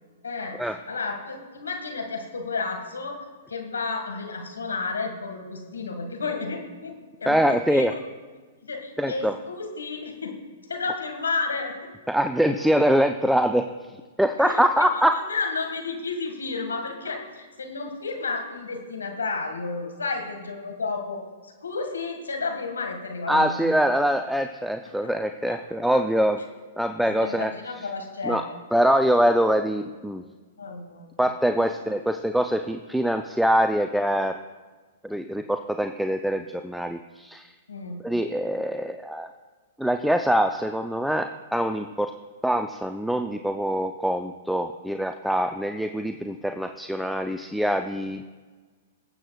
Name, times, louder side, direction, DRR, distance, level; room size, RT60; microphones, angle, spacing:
voice 1, 0.2-0.6 0.9-6.9 7.2-8.0 8.6-10.4 10.7-11.9 14.4-23.7 25.0-25.1 25.5-25.6 27.0-28.5 30.6-31.1 31.6-31.7 37.7-38.0, left 4 dB, 85° left, 4 dB, 1.7 m, -32 dB
voice 2, 7.3-7.9 9.0-9.4 12.1-13.7 14.2-15.2 23.3-26.4 26.8-27.5 28.2-28.4 28.7-30.2 31.2-34.4 35.0-37.5 38.0-39.3 39.8-42.1 42.4-48.2, equal, ahead, 6 dB, 0.4 m, -24 dB
23.5 x 7.9 x 2.3 m, 1.4 s
hypercardioid pair, 120°, 0 cm